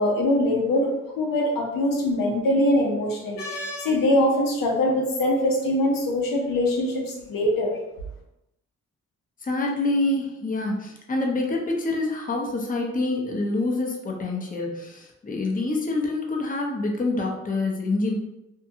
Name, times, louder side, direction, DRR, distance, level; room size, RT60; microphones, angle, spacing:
voice 1, 0.0-7.7, left 1 dB, 85° left, -1 dB, 0.7 m, -23 dB
voice 2, 9.4-18.1, left 2 dB, 25° left, 0 dB, 0.7 m, -26 dB
2.7 x 2.2 x 2.7 m, 0.90 s
cardioid pair, 55°, 32 cm